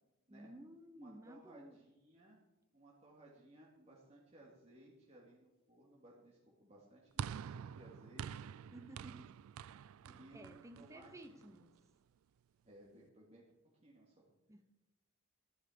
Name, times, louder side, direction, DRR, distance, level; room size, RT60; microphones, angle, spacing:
voice 1, 0.3-1.8 8.7-9.4 10.3-11.7 14.5-14.6, right 1 dB, 15° right, 0.8 m, -54 dB
voice 2, 0.9-2.4 2.7-8.5 10.0-11.6 12.6-13.4 13.7-14.3, right 1 dB, 30° right, 2.3 m, -61 dB
sound 1, 7.2-11.6, right 8 dB, 75° right, 0.3 m, -47 dB
12.5 x 11.5 x 5.1 m
head